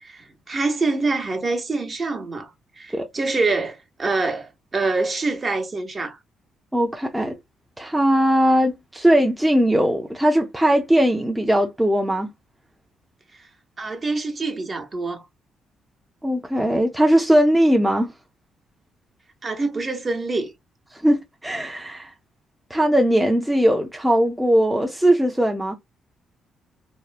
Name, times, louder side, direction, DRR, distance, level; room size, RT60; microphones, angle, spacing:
voice 1, 0.0-2.5 2.8-6.2 13.4-13.5 13.8-15.2 19.4-20.5, right 3 dB, 35° right, 0.8 m, -25 dB
voice 2, 6.7-7.4 7.8-12.3 16.2-18.1 21.0-22.1 22.7-25.8, equal, 5° right, 0.5 m, -19 dB
3.0 x 2.0 x 2.2 m
cardioid pair, 80°, 0 cm